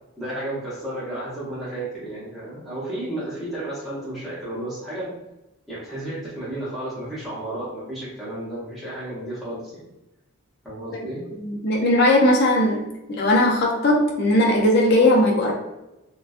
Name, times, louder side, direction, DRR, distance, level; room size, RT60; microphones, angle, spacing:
voice 1, 0.2-5.1 5.7-9.9 10.6-11.2, right 1 dB, ahead, -10 dB, 0.7 m, -32 dB
voice 2, 11.4-15.5, left 1 dB, 45° left, -1 dB, 0.4 m, -19 dB
2.5 x 2.2 x 2.4 m, 0.97 s
head